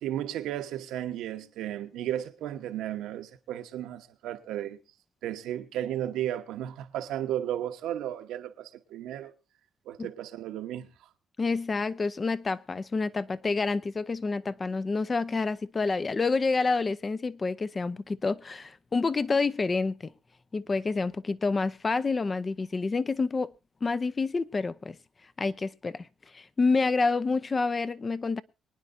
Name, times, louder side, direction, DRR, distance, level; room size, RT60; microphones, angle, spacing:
voice 1, 0.0-4.8 5.2-9.3 9.9-10.9, right 11 dB, 90° right, 1.2 m, -34 dB
voice 2, 11.4-20.1 20.5-23.5 23.8-25.0 25.4-26.1 26.3-28.4, left 4 dB, 30° left, 0.7 m, -28 dB
23.5 x 10.0 x 2.7 m
cardioid pair, 90°, 0 cm